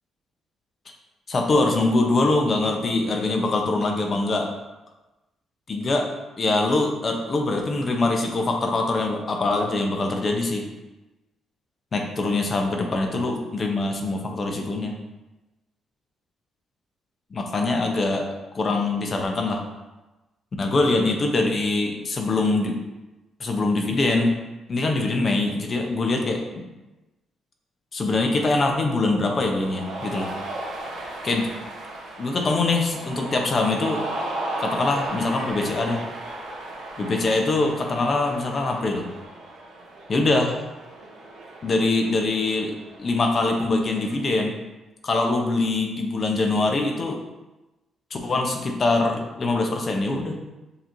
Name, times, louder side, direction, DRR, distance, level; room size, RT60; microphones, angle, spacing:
voice 1, 1.3-4.5 5.7-6.0 6.4-10.6 11.9-14.9 17.3-18.2 18.5-19.6 20.6-22.8 23.4-24.3 24.7-26.4 27.9-30.3 31.2-31.5 32.2-34.0 34.6-36.0 37.0-39.1 40.1-40.6 41.6-44.5 45.0-47.2 48.1-50.4, left 2 dB, 40° left, 3 dB, 0.8 m, -23 dB
Cheering, 29.5-44.3, right 1 dB, 90° right, 1.0 m, -35 dB
6.8 x 2.9 x 2.7 m, 1.1 s
cardioid pair, 90°, 0 cm